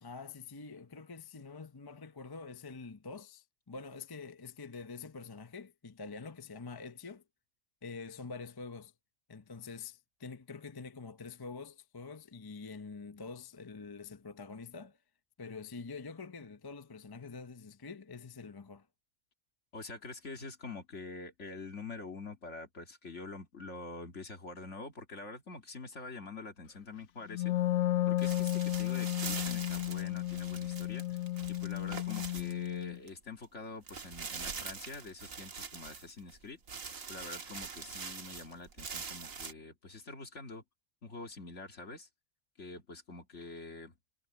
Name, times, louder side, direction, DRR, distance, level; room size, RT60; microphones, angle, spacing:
voice 1, 0.0-7.2 7.8-8.9 9.3-15.0 15.4-18.9, left 4 dB, 25° left, 0.6 m, -46 dB
voice 2, 19.7-27.6 28.1-31.2 31.5-36.6 37.1-40.6 41.0-42.1 42.6-44.0, left 3 dB, 55° left, 2.7 m, -46 dB
Wind instrument woodwind instrument, 27.3-33.0, left 15 dB, 80° left, 1.2 m, -33 dB
sound 1, 28.2-33.1 33.4-33.5 33.9-36.4 36.7-39.5, right 5 dB, 70° right, 2.0 m, -44 dB
omnidirectional pair, 1.4 m